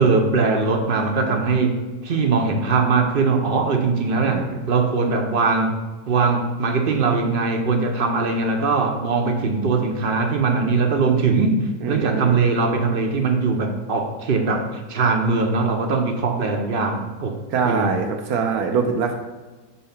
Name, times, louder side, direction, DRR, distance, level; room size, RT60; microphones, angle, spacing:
voice 1, 0.0-1.8 2.0-5.7 6.1-11.6 11.9-17.4 17.6-17.9, right 4 dB, 50° right, 3 dB, 0.7 m, -21 dB
voice 2, 4.2-4.6 11.8-12.4 17.5-19.1, right 5 dB, 75° right, 3 dB, 1.1 m, -24 dB
5.5 x 3.9 x 5.7 m, 1.2 s
omnidirectional pair, 1.6 m